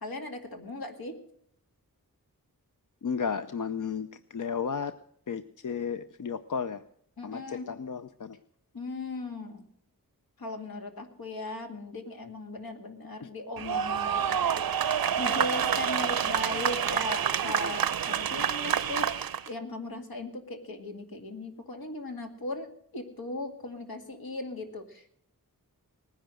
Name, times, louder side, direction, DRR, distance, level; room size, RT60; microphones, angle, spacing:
voice 1, 0.0-1.2 7.2-7.7 8.7-9.7 10.4-25.2, left 2 dB, 80° left, 4 dB, 2.3 m, -38 dB
voice 2, 3.0-4.9 5.3-6.8 7.2-8.4 13.2-13.3, left 6 dB, 60° left, 11 dB, 0.6 m, -33 dB
sound 1, 13.6-19.5, right 8 dB, 80° right, 0.6 m, -28 dB
19.5 x 10.0 x 6.4 m, 0.68 s
wide cardioid pair, 85°, 35 cm